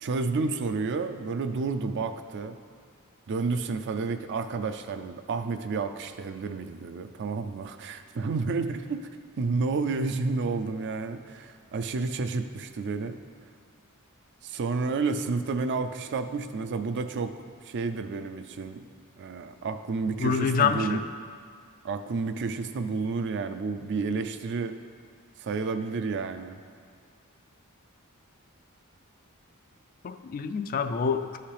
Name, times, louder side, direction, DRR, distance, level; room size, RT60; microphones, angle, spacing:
voice 1, 0.0-2.6 3.3-9.0 9.4-13.2 14.4-17.3 17.6-18.8 19.2-21.0 21.8-24.8 25.4-26.6, right 4 dB, 55° right, 8 dB, 0.4 m, -30 dB
voice 2, 20.2-21.0 30.0-31.4, left 6 dB, 40° left, 9 dB, 0.3 m, -26 dB
12.5 x 5.7 x 3.3 m, 2.1 s
head